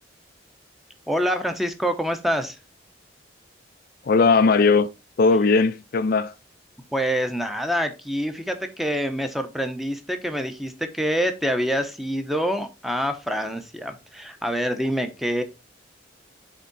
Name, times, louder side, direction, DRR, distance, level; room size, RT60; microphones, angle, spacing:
voice 1, 1.1-2.6 6.9-15.4, equal, ahead, 0.8 m, -26 dB
voice 2, 4.0-4.9 5.2-6.3, left 4 dB, 50° left, 0.4 m, -18 dB
8.2 x 3.7 x 4.0 m
head